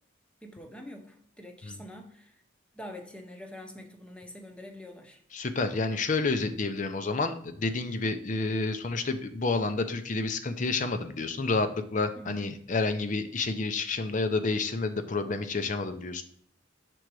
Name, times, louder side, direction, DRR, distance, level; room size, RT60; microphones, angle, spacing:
voice 1, 0.4-2.4 2.7-5.2 12.1-12.6, equal, 5° left, 0.8 m, -45 dB
voice 2, 5.3-16.2, left 3 dB, 40° left, 0.6 m, -29 dB
6.1 x 3.9 x 4.6 m
head